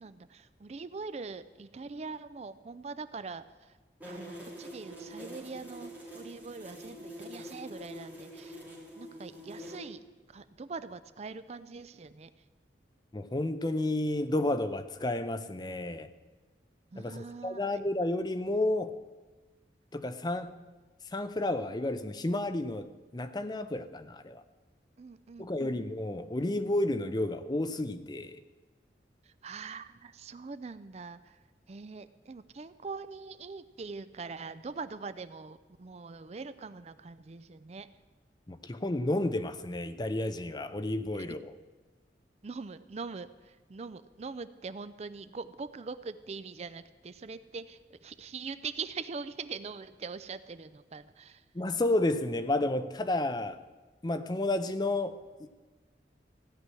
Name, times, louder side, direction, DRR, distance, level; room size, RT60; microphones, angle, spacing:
voice 1, 0.0-3.8 4.1-8.6 9.0-12.3 16.9-17.8 25.0-25.9 29.2-31.4 31.7-37.9 41.1-41.3 42.4-51.4, right 4 dB, 35° right, 14 dB, 0.4 m, -43 dB
sound 1, 4.0-9.8, equal, 10° right, 3.4 m, -45 dB
voice 2, 13.1-16.1 17.0-18.9 19.9-20.5 21.1-24.4 25.4-28.4 38.5-41.5 51.5-53.6 54.0-55.5, left 1 dB, 25° left, 10 dB, 0.6 m, -31 dB
16.0 x 6.0 x 9.7 m, 1.3 s
head